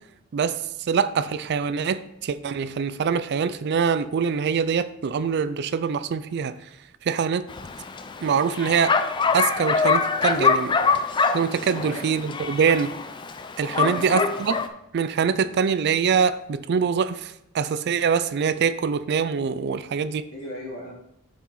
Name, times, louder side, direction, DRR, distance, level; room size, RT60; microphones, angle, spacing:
voice 1, 0.3-6.6 7.0-7.5 8.2-9.0 9.3-10.8 11.3-12.9 13.6-14.6 14.9-20.3, right 6 dB, 50° right, 0.3 m, -24 dB
Bark, 7.5-14.7, left 5 dB, 20° left, 0.3 m, -24 dB
voice 2, 11.7-12.4 13.7-14.4 20.3-20.9, left 1 dB, 85° left, 2.3 m, -37 dB
7.0 x 4.8 x 3.8 m
head